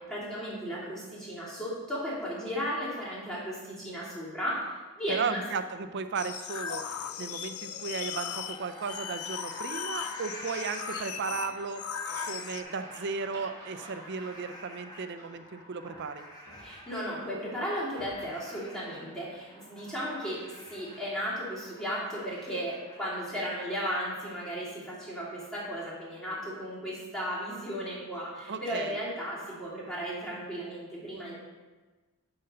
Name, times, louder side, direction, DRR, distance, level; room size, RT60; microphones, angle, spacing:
voice 1, 0.1-4.6 5.0-5.4 16.6-31.4, equal, 5° left, -9 dB, 2.8 m, -35 dB
voice 2, 5.1-6.8 7.2-11.8 12.3-16.2 28.5-29.0, right 5 dB, 55° right, 10 dB, 0.5 m, -35 dB
sound 1, 6.1-12.6, left 8 dB, 90° left, 0.5 m, -38 dB
sound 2, 6.9-23.9, left 1 dB, 20° left, 1.4 m, -48 dB
sound 3, 11.8-15.5 15.8-17.2 18.0-18.5, right 1 dB, 20° right, 2.8 m, -51 dB
11.0 x 3.9 x 5.5 m, 1.3 s
head